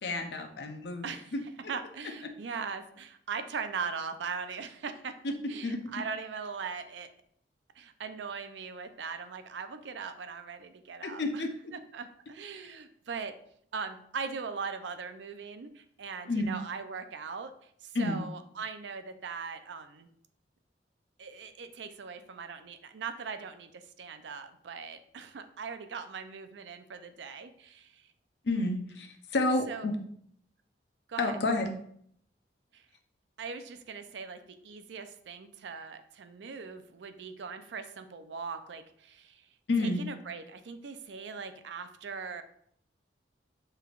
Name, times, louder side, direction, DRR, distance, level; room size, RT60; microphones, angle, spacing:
voice 1, 0.0-1.0 1.3-1.4 5.2-5.3 5.6-6.0 11.0-11.5 16.3-16.5 17.9-18.2 28.4-29.9 31.2-31.7 39.7-40.0, left 2 dB, 70° left, 5 dB, 0.6 m, -30 dB
voice 2, 1.0-1.3 1.7-5.1 5.5-7.1 7.8-11.4 11.9-13.3 13.7-20.1 21.2-28.1 29.7-29.9 31.1-31.4 32.7-32.8 33.4-39.5 39.8-42.4, right 5 dB, 80° right, 9 dB, 0.5 m, -40 dB
6.7 x 3.3 x 2.4 m, 0.65 s
head